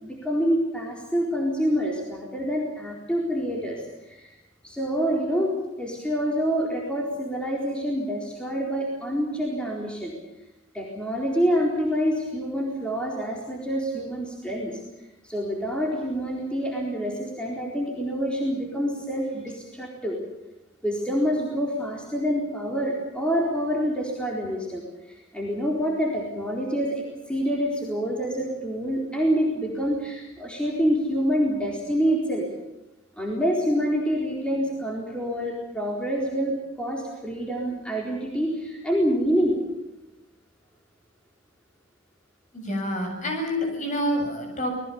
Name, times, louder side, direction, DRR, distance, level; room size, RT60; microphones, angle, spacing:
voice 1, 0.0-4.3 4.6-10.1 10.7-14.8 15.2-20.2 20.8-32.5 33.2-39.6, equal, 5° left, -2 dB, 4.2 m, -27 dB
voice 2, 42.5-44.7, equal, 40° left, 3 dB, 7.6 m, -27 dB
28.0 x 20.5 x 7.1 m, 0.95 s
head